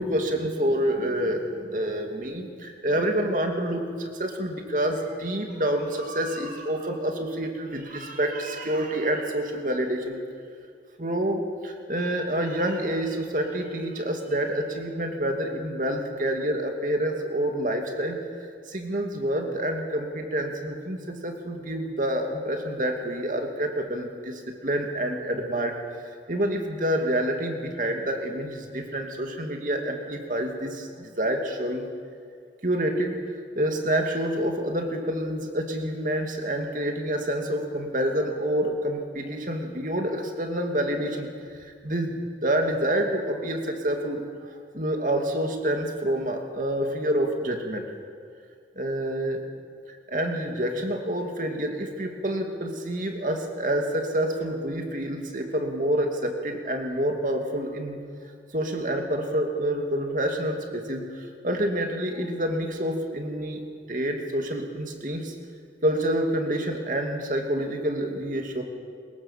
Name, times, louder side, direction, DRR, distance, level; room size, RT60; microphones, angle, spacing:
voice 1, 0.0-10.2 11.0-18.2 18.7-25.8 26.3-31.9 32.6-33.2 33.6-41.3 41.6-44.2 44.7-47.8 48.8-49.4 50.1-58.0 58.5-63.6 63.9-65.3 65.8-68.6, right 1 dB, 50° right, 3 dB, 2.6 m, -28 dB
23.0 x 21.0 x 7.5 m, 2.2 s
head